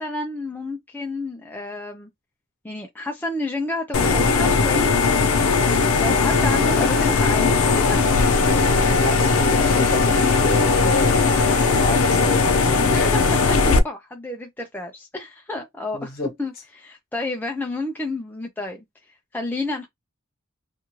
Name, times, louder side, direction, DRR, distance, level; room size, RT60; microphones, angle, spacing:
voice 1, 0.0-2.1 2.6-4.9 6.0-8.0 12.7-18.8 19.3-19.9, left 2 dB, 10° left, 0.4 m, -30 dB
sound 1, 3.9-13.8, left 4 dB, 80° left, 0.5 m, -18 dB
voice 2, 8.9-11.4 11.8-13.3 15.9-16.3, left 3 dB, 50° left, 1.1 m, -29 dB
2.6 x 2.4 x 2.9 m
head